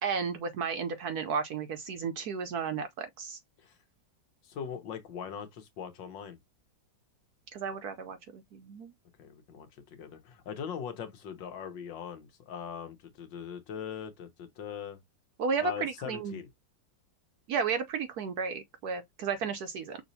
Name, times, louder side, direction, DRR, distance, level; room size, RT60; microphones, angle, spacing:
voice 1, 0.0-3.4 7.5-8.9 15.4-16.4 17.5-20.0, right 5 dB, 65° right, 1.0 m, -33 dB
voice 2, 4.4-6.4 9.2-15.0 15.6-16.5, left 7 dB, 70° left, 1.7 m, -41 dB
6.0 x 3.1 x 2.7 m
omnidirectional pair, 2.1 m